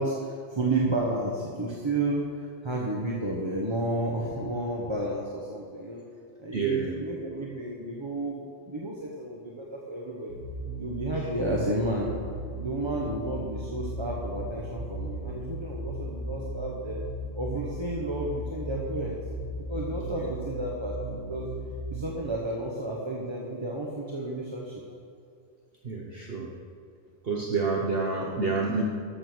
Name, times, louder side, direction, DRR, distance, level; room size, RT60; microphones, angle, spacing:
voice 1, 0.0-6.0 6.4-10.3 10.8-12.1 12.6-17.0 17.4-19.2 19.7-21.5 21.9-24.8, right 1 dB, 20° right, -3 dB, 1.1 m, -31 dB
voice 2, 6.5-6.9 20.2-20.3 25.8-26.5 27.2-28.8, right 4 dB, 50° right, -1 dB, 1.1 m, -28 dB
sound 1, 10.3-22.2, right 1 dB, 70° right, 3.5 m, -37 dB
14.0 x 6.7 x 6.2 m, 2.3 s
omnidirectional pair, 1.4 m